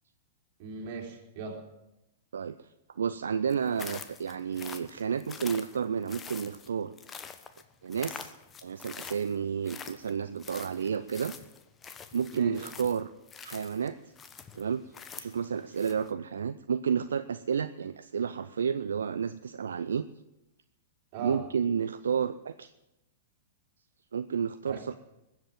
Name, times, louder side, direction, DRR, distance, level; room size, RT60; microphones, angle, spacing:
voice 1, 0.6-1.6 12.3-12.6 21.1-21.4 24.7-24.8, right 4 dB, 45° right, 0 dB, 3.7 m, -38 dB
voice 2, 2.3-2.7 3.0-6.9 7.8-8.3 8.6-11.3 12.1-13.1 13.4-14.0 14.5-14.8 15.2-20.0 21.2-22.7 24.1-24.9, right 7 dB, 70° right, 12 dB, 0.5 m, -31 dB
sound 1, 3.5-16.1, left 6 dB, 20° left, 1.1 m, -46 dB
20.5 x 8.0 x 7.5 m, 0.94 s
figure-of-eight pair, 105°, 0 cm